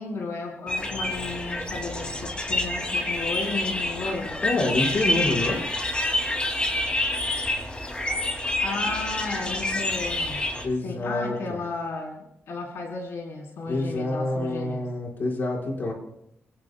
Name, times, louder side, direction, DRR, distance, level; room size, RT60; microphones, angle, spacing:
voice 1, 0.0-4.4 8.6-10.5 10.8-12.2 12.5-14.9, left 3 dB, 80° left, -1 dB, 3.6 m, -34 dB
sound 1, 0.7-10.7, left 1 dB, 25° left, 2.4 m, -28 dB
voice 2, 4.4-5.6 10.6-11.3 13.7-15.9, left 2 dB, 50° left, -2 dB, 4.7 m, -27 dB
29.0 x 17.5 x 2.2 m, 0.80 s
wide cardioid pair, 140°, 5 cm